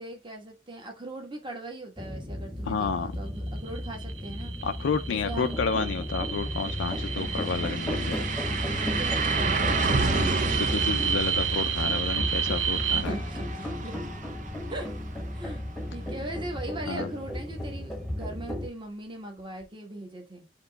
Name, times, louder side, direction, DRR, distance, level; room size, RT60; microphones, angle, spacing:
voice 1, 0.0-4.5 5.1-5.6 7.2-7.4 8.5-10.8 12.9-14.0 14.7-14.9 15.3-20.5, right 1 dB, 25° right, 1.4 m, -40 dB
sound 1, 2.0-18.7, left 1 dB, ahead, 1.1 m, -33 dB
voice 2, 2.7-3.1 4.6-8.3 10.0-13.1 16.9-17.1, left 5 dB, 85° left, 0.4 m, -31 dB
sound 2, 3.6-13.0, right 8 dB, 85° right, 0.7 m, -32 dB
sound 3, 6.2-6.3 6.6-16.4 16.8-16.9 19.6-19.7, right 4 dB, 45° right, 0.6 m, -32 dB
7.9 x 3.0 x 2.3 m
head